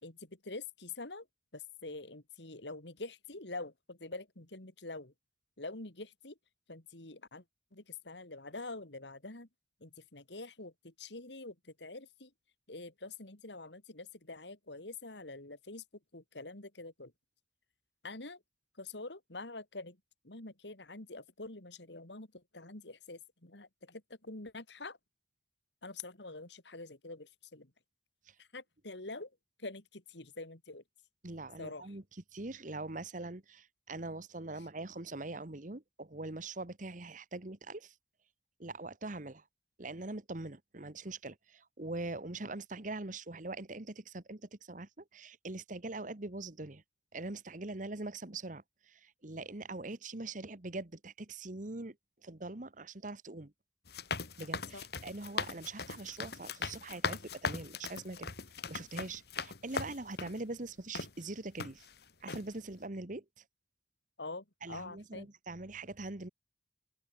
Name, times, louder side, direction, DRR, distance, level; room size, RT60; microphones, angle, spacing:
voice 1, 0.0-1.3 1.5-5.1 5.6-6.4 6.7-7.4 7.7-9.5 9.8-12.3 12.7-15.8 16.1-17.1 18.0-18.4 18.8-20.0 20.2-25.0 25.8-27.7 28.4-29.3 29.6-30.8 31.6-31.9 54.7-54.8 64.2-65.3, left 3 dB, 80° left, 3.2 m, -46 dB
voice 2, 31.2-32.0 32.3-37.9 38.6-39.4 39.8-46.8 47.1-52.0 52.2-53.5 54.4-58.3 58.7-61.8 62.2-63.4 64.6-66.3, right 2 dB, 45° right, 1.5 m, -43 dB
sound 1, 53.9-60.4 60.9-61.1 61.6-62.0 62.3-62.5, left 4 dB, 65° left, 2.3 m, -39 dB
open air
head